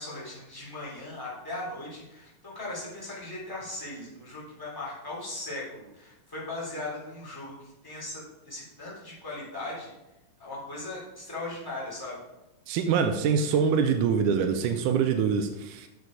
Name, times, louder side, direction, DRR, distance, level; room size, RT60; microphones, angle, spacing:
voice 1, 0.0-9.9 10.4-12.2, left 2 dB, 5° left, -7 dB, 3.3 m, -38 dB
voice 2, 12.7-15.9, right 6 dB, 75° right, 6 dB, 2.1 m, -24 dB
8.3 x 6.8 x 4.8 m, 0.95 s
omnidirectional pair, 3.9 m